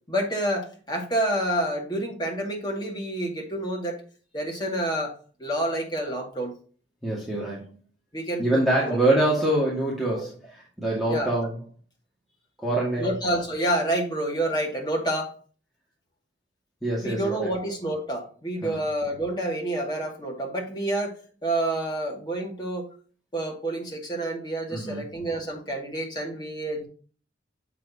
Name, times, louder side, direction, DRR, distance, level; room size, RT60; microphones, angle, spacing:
voice 1, 0.1-4.0 4.3-5.1 5.4-6.5 8.1-9.0 10.2-10.3 11.1-11.3 13.0-15.3 17.0-22.9 23.3-26.9, right 1 dB, 25° left, 0 dB, 2.1 m, -28 dB
voice 2, 7.0-7.7 8.4-11.6 12.6-13.1 16.8-17.5 18.6-18.8 24.7-25.0, right 1 dB, ahead, -6 dB, 2.0 m, -25 dB
7.3 x 6.0 x 2.8 m, 0.39 s
head